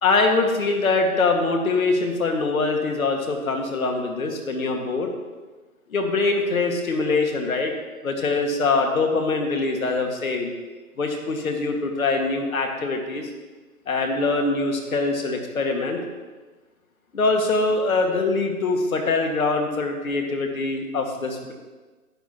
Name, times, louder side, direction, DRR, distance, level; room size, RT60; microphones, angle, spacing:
voice 1, 0.0-5.1 5.9-7.7 8.0-10.5 11.0-13.3 13.9-16.0 17.1-21.5, left 3 dB, 65° left, 3 dB, 1.9 m, -23 dB
10.5 x 10.0 x 2.9 m, 1.3 s
hypercardioid pair, 155°, 45 cm